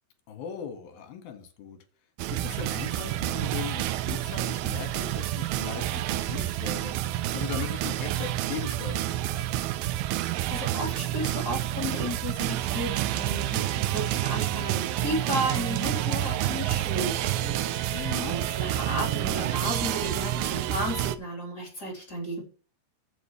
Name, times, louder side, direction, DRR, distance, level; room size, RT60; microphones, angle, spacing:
voice 1, 0.3-1.8 2.3-9.7 17.9-18.4, left 8 dB, 65° left, 7 dB, 3.3 m, -39 dB
sound 1, 2.2-21.2, right 14 dB, 90° right, 2.1 m, -29 dB
voice 2, 10.3-22.4, equal, 25° left, -2 dB, 4.1 m, -34 dB
14.0 x 7.4 x 3.3 m, 0.39 s
omnidirectional pair, 5.0 m